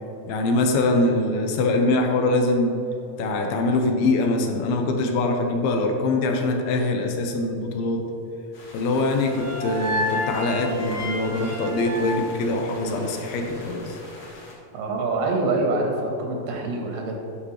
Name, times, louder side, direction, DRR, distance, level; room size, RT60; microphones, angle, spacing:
voice 1, 0.3-2.8 3.2-8.0 8.7-14.0, left 2 dB, 85° left, 3 dB, 2.5 m, -23 dB
sound 1, 8.5-14.5, left 1 dB, 50° left, 1.9 m, -44 dB
sound 2, 9.0-13.2, left 1 dB, 65° right, 1.6 m, -31 dB
voice 2, 14.7-17.2, right 2 dB, 85° right, 1 dB, 3.2 m, -25 dB
11.0 x 6.1 x 3.1 m, 2.9 s
omnidirectional pair, 4.5 m